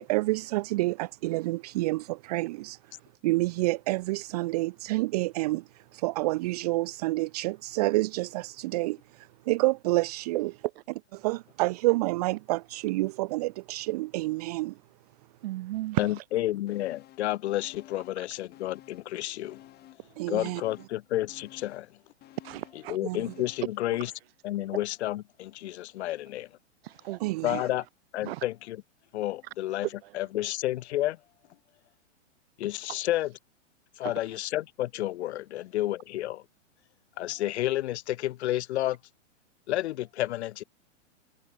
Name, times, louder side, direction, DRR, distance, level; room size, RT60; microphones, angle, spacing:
voice 1, 0.0-2.8 3.2-5.6 5.9-10.5 11.2-14.7 20.2-20.6 23.0-23.2 27.2-27.6, right 21 dB, 30° right, 0.5 m, -28 dB
voice 2, 15.4-16.0 22.4-23.0 26.8-27.2 27.5-27.6 28.2-28.4 30.0-30.1 34.0-34.1, right 17 dB, 50° right, 2.1 m, -36 dB
voice 3, 16.0-19.6 20.3-21.9 22.9-24.1 24.4-26.5 27.4-27.8 28.1-28.8 29.1-29.9 30.1-31.2 32.6-33.3 34.0-36.4 37.2-39.0 39.7-40.6, left 14 dB, 55° left, 4.7 m, -30 dB
sound 1, 16.7-17.3 17.6-19.2 19.4-23.8 24.2-24.3, left 14 dB, 25° left, 6.6 m, -53 dB
hypercardioid pair, 150°, 38 cm